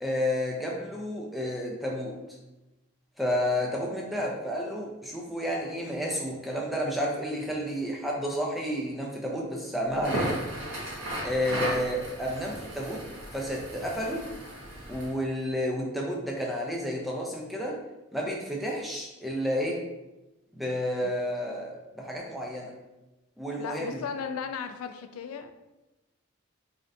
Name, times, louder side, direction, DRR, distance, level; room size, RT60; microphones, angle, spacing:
voice 1, 0.0-2.2 3.2-10.4 11.2-13.1 13.3-14.3 14.9-17.8 18.1-19.8 20.5-22.7 23.4-24.0, equal, ahead, -2 dB, 0.5 m, -31 dB
Crackle, 9.9-15.2, right 1 dB, 65° right, 1.2 m, -35 dB
voice 2, 23.6-25.5, left 6 dB, 80° left, 8 dB, 0.3 m, -36 dB
3.7 x 3.3 x 2.6 m, 1.0 s
head